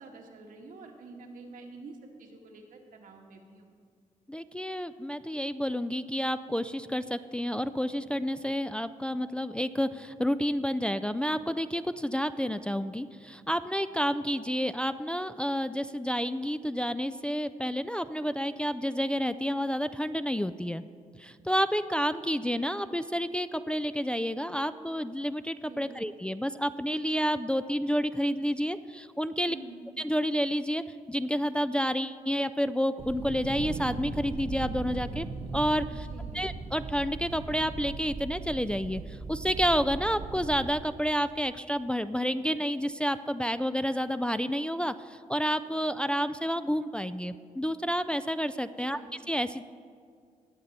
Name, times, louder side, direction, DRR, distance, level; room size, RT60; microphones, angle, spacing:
voice 1, 0.0-3.6 25.6-25.9 29.5-29.9 35.9-36.5 48.8-49.1, right 3 dB, 80° right, 2 dB, 1.4 m, -48 dB
voice 2, 4.3-20.8 21.2-29.6 30.0-35.3 35.5-35.8 36.3-49.0 49.3-49.6, equal, 5° left, 11 dB, 0.3 m, -30 dB
sound 1, 33.0-40.8, right 4 dB, 55° right, 0.8 m, -38 dB
18.5 x 6.6 x 4.1 m, 2.1 s
cardioid pair, 80°, 14 cm